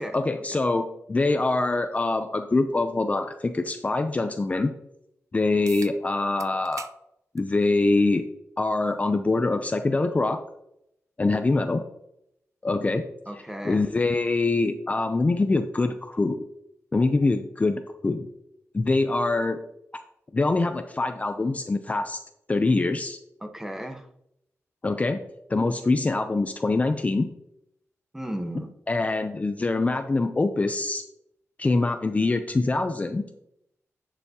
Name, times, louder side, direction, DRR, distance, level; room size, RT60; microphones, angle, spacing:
voice 1, 0.0-4.7 5.3-6.9 7.3-8.2 8.6-10.4 11.2-11.8 12.6-13.0 13.6-16.4 16.9-18.3 18.7-19.6 20.3-22.2 22.5-23.2 24.8-25.2 25.5-27.3 28.9-31.0 31.6-33.3, left 3 dB, 25° left, 7 dB, 0.5 m, -24 dB
sound 1, 5.7-6.0 6.4-7.0 7.4-7.5 8.6-8.7 13.6-13.7, right 7 dB, 80° right, 0.4 m, -42 dB
voice 2, 13.3-13.8 23.4-24.1 28.1-28.7, equal, 10° right, 6 dB, 0.9 m, -35 dB
10.5 x 6.9 x 2.8 m, 0.79 s
wide cardioid pair, 135°, 5 cm